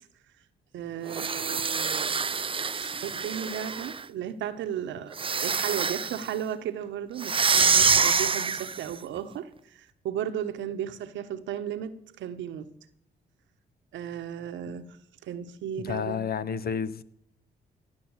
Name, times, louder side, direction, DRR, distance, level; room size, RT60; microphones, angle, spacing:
voice 1, 0.7-2.3 2.7-5.2 5.4-12.7 13.9-15.0 15.2-16.2, right 9 dB, 80° right, 1.2 m, -35 dB
sound 1, 1.1-4.0 5.1-6.3 7.2-8.9, right 5 dB, 30° right, 0.6 m, -26 dB
voice 2, 15.8-17.0, left 7 dB, 55° left, 1.1 m, -30 dB
17.0 x 5.9 x 8.9 m
supercardioid pair, 60°, 19 cm